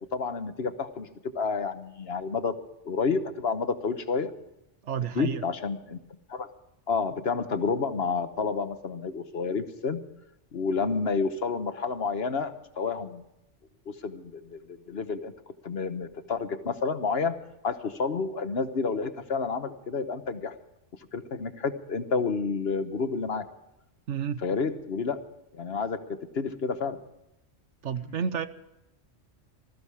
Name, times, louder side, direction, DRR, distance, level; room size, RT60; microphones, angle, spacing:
voice 1, 0.1-2.5 2.8-4.3 5.1-6.0 6.3-6.5 6.9-10.0 10.5-13.2 14.0-15.3 15.6-17.4 17.6-20.5 21.1-23.4 24.4-25.3 25.5-27.0 28.1-28.2, left 4 dB, 60° left, 1.4 m, -30 dB
voice 2, 4.8-5.4 24.1-24.4 27.8-28.5, right 7 dB, 75° right, 1.2 m, -30 dB
20.5 x 14.5 x 4.9 m
omnidirectional pair, 1.2 m